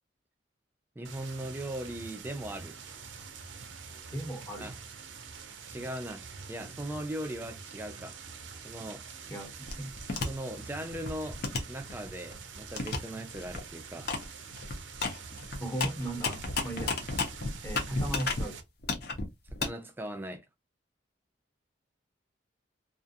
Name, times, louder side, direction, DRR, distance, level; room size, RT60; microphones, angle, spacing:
voice 1, 1.0-2.8 4.6-4.8 5.7-8.2 8.6-9.0 10.2-11.4 11.7-14.2 19.5-20.4, right 1 dB, 10° right, 0.4 m, -39 dB
sound 1, 1.0-18.6, right 5 dB, 75° right, 0.5 m, -46 dB
voice 2, 4.1-4.7 9.3-9.5 9.8-9.9 15.6-17.0 17.6-18.6, right 1 dB, 10° left, 0.8 m, -36 dB
sound 2, 9.7-10.3 10.8-12.3 12.8-13.0 13.3-13.6 14.1-14.2 14.5-18.4 18.8-19.7, left 3 dB, 55° left, 0.6 m, -32 dB
2.4 x 2.2 x 2.7 m
head